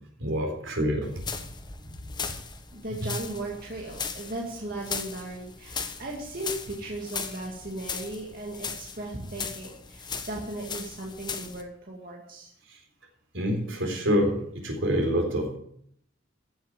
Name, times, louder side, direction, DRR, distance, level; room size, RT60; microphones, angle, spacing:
voice 1, 0.2-1.1 3.0-3.1 13.3-15.6, equal, 75° right, 2 dB, 4.1 m, -26 dB
sound 1, 1.0-11.6, left 5 dB, 20° left, 1.1 m, -38 dB
voice 2, 2.7-12.5, right 1 dB, 45° right, -2 dB, 2.1 m, -37 dB
15.0 x 7.2 x 7.5 m, 0.68 s
head